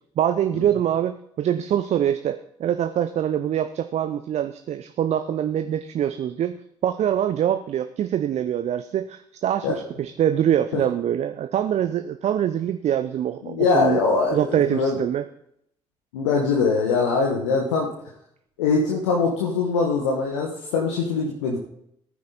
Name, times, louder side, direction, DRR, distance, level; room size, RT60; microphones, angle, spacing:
voice 1, 0.2-6.6 6.8-14.0 14.3-15.3, right 10 dB, 50° right, 10 dB, 0.7 m, -24 dB
voice 2, 13.4-15.0 16.1-17.9 18.6-21.6, left 4 dB, 75° left, -2 dB, 1.5 m, -22 dB
17.0 x 9.5 x 4.1 m, 0.74 s
figure-of-eight pair, 40°, 15 cm